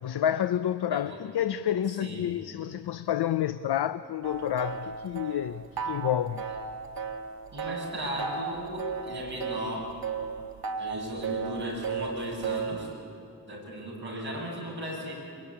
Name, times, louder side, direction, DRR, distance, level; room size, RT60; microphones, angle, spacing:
voice 1, 0.0-6.4, left 10 dB, 80° left, 0.6 m, -29 dB
voice 2, 2.0-2.4 7.5-9.9 10.8-12.9 13.5-15.1, equal, 30° right, 7.4 m, -36 dB
sound 1, 4.2-12.9, right 5 dB, 65° right, 1.7 m, -35 dB
24.5 x 22.0 x 10.0 m
wide cardioid pair, 180°, 38 cm